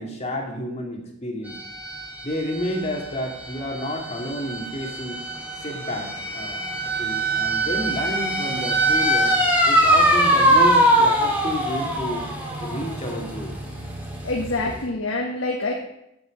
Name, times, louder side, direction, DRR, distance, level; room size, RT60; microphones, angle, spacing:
voice 1, 0.0-1.5 2.2-5.2 5.6-6.6 7.0-9.4 9.7-12.2 12.6-13.5, left 1 dB, 30° left, 1 dB, 2.4 m, -30 dB
sound 1, 1.5-14.8, right 1 dB, 10° right, 2.5 m, -23 dB
voice 2, 14.2-15.7, left 2 dB, 70° left, -1 dB, 1.4 m, -26 dB
8.2 x 7.8 x 7.6 m, 0.83 s
head